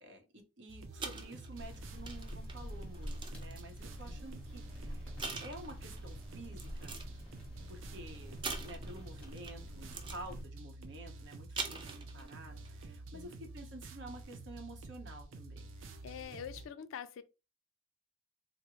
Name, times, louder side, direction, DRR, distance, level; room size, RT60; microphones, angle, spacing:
voice 1, 0.0-7.0 7.7-15.8, right 1 dB, 65° right, 0.8 m, -50 dB
sound 1, 0.7-16.7, right 2 dB, 80° right, 0.5 m, -49 dB
sound 2, 1.0-3.8 4.6-4.8 5.2-6.0 6.6-7.2 8.4-9.6 9.9-10.3 11.3-12.3 12.7-12.8, right 4 dB, 25° right, 0.4 m, -43 dB
sound 3, 1.6-10.4, equal, 5° left, 1.1 m, -47 dB
voice 2, 16.0-17.2, left 8 dB, 85° left, 0.3 m, -45 dB
3.6 x 2.0 x 3.0 m
head